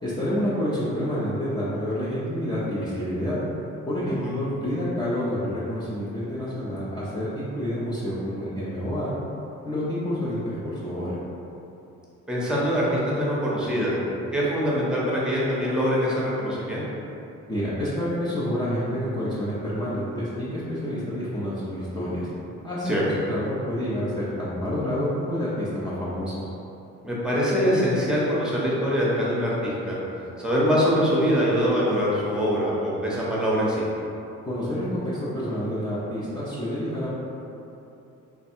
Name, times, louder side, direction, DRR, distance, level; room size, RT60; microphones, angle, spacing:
voice 1, 0.0-3.4 3.8-9.1 9.7-11.2 17.5-22.3 22.6-26.5 34.4-37.1, equal, 15° left, -10 dB, 0.7 m, -28 dB
voice 2, 12.3-14.0 14.3-16.8 22.8-23.0 27.0-30.0 30.4-33.8, equal, 5° right, -7 dB, 1.0 m, -23 dB
3.4 x 2.2 x 4.4 m, 2.8 s
cardioid pair, 90°, 30 cm